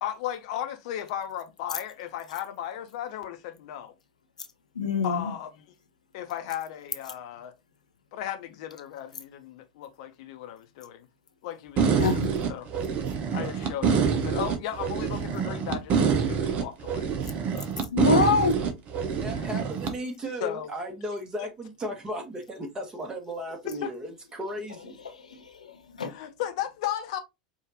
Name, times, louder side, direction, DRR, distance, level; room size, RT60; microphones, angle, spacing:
voice 1, 0.0-3.9 5.0-5.7 6.1-7.5 8.1-11.1 11.4-12.1 12.5-12.7 13.3-17.1 19.3-19.5 20.4-20.7 23.8-23.9 26.1-27.2, left 11 dB, 60° left, 0.9 m, -35 dB
voice 2, 4.8-5.3 12.0-12.3 17.9-18.7 25.3-26.1, left 4 dB, 85° left, 0.7 m, -25 dB
sound 1, 11.8-19.9, right 6 dB, 40° right, 1.0 m, -26 dB
voice 3, 19.2-25.0, equal, 20° right, 1.7 m, -35 dB
4.9 x 2.8 x 2.9 m
hypercardioid pair, 85°, 4 cm